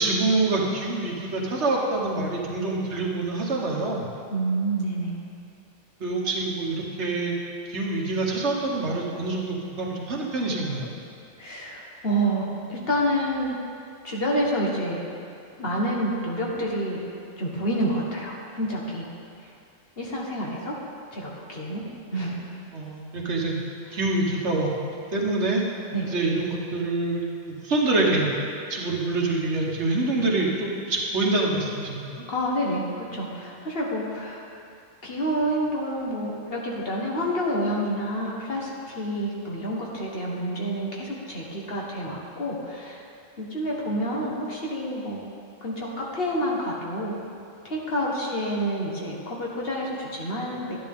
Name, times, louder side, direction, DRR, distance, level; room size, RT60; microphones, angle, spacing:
voice 1, 0.0-4.0 6.0-7.3 7.7-10.9 22.7-23.5 23.9-24.7 25.1-25.6 26.0-27.2 27.5-28.3 28.7-32.2, right 2 dB, 65° right, -1 dB, 1.5 m, -26 dB
voice 2, 4.3-5.1 11.4-13.5 14.0-15.0 15.6-17.0 17.4-19.1 20.0-20.7 21.1-21.8 22.1-22.6 25.9-26.1 32.3-34.4 35.0-43.0 43.4-45.2 45.6-47.1 47.6-50.8, equal, 50° left, -3 dB, 1.7 m, -28 dB
12.0 x 9.8 x 3.7 m, 2.5 s
omnidirectional pair, 1.3 m